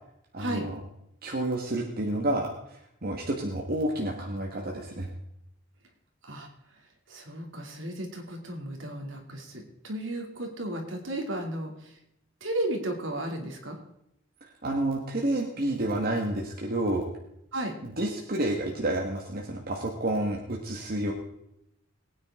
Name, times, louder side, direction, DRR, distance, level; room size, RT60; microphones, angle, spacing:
voice 1, 0.3-0.7 1.2-5.1 14.6-17.1 17.8-21.1, right 1 dB, 50° right, 0 dB, 1.7 m, -30 dB
voice 2, 7.1-12.0 12.4-13.8 17.5-17.8, right 1 dB, 70° right, 3 dB, 2.7 m, -34 dB
21.5 x 9.5 x 3.8 m, 0.80 s
head